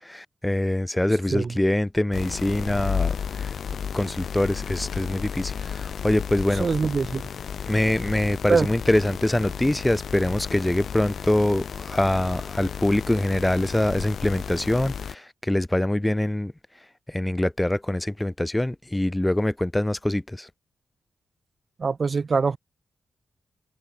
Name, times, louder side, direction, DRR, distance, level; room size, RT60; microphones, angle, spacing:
voice 1, 0.1-3.5 3.9-6.7 7.7-16.5 17.1-20.5, left 1 dB, 10° left, 0.7 m, -24 dB
sound 1, 2.1-15.2, left 7 dB, 70° left, 0.8 m, -33 dB
voice 2, 6.5-7.2 8.5-8.7 21.8-22.6, right 5 dB, 45° right, 0.6 m, -23 dB
wide cardioid pair, 115°, 0 cm